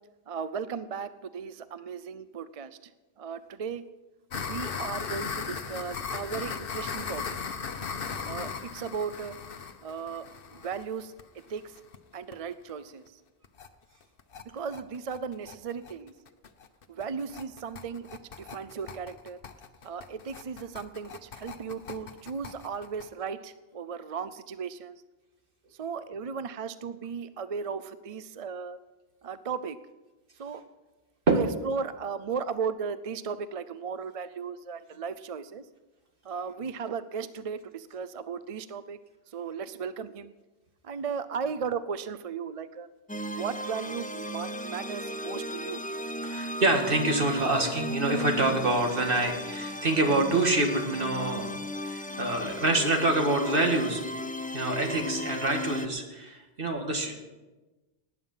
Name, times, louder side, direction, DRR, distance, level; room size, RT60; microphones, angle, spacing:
voice 1, 0.3-2.8 3.2-3.8 4.5-7.4 8.2-9.3 9.8-10.3 10.5-11.1 11.5-11.6 12.1-13.0 14.5-16.1 16.9-19.4 19.8-24.9 25.8-28.8 29.2-29.8 30.4-30.6 31.3-35.6 36.2-39.0 39.3-40.3 40.8-42.9 43.3-45.8, right 6 dB, 45° right, 14 dB, 0.5 m, -36 dB
sound 1, 4.3-12.0 12.3-12.4 12.7-12.8 13.1-13.2 13.4-13.7 14.0-23.1, left 6 dB, 65° left, 1.0 m, -38 dB
sound 2, 43.1-55.9, equal, 15° left, 0.3 m, -36 dB
voice 2, 46.2-51.6 51.8-54.0 54.5-57.1, right 2 dB, 60° right, 3 dB, 2.1 m, -26 dB
18.5 x 9.5 x 5.6 m, 1.2 s
omnidirectional pair, 1.0 m